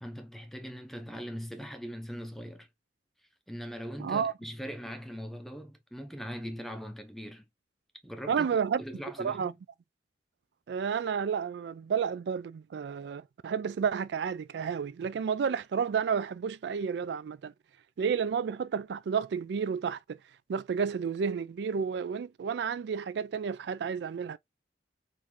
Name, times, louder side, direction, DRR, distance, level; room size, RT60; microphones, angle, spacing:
voice 1, 0.0-2.7 3.5-7.4 8.0-9.6, equal, ahead, 0.6 m, -41 dB
voice 2, 4.0-4.3 8.3-8.8 9.2-9.5 10.7-17.5 18.0-20.2 20.5-24.4, right 6 dB, 70° right, 0.3 m, -31 dB
3.7 x 2.6 x 2.9 m
head